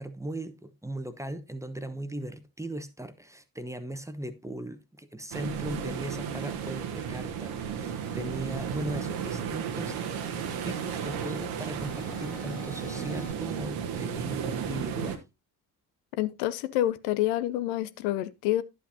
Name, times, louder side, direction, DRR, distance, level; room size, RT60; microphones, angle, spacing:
voice 1, 0.0-10.0 10.6-15.2, right 1 dB, 5° right, 0.9 m, -38 dB
sound 1, 5.3-15.2, right 8 dB, 70° right, 1.3 m, -34 dB
sound 2, 6.2-7.3 7.8-9.3 9.8-11.3 11.8-13.3, left 4 dB, 45° left, 2.3 m, -49 dB
voice 2, 16.2-18.6, left 13 dB, 70° left, 0.7 m, -28 dB
11.5 x 8.1 x 2.7 m
figure-of-eight pair, 40°, 50 cm